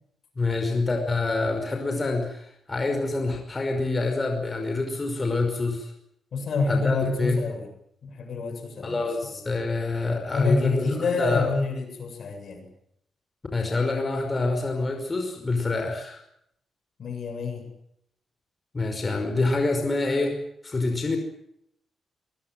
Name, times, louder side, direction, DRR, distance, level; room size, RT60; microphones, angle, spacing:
voice 1, 0.4-5.9 6.7-7.4 8.8-11.5 13.5-16.2 18.7-20.4 20.6-21.2, left 3 dB, 30° left, 3 dB, 5.5 m, -26 dB
voice 2, 6.3-7.7 8.0-9.1 10.2-12.7 17.0-17.7, left 3 dB, 65° left, 6 dB, 7.5 m, -27 dB
23.0 x 21.5 x 7.9 m, 0.74 s
cardioid pair, 95°, 0 cm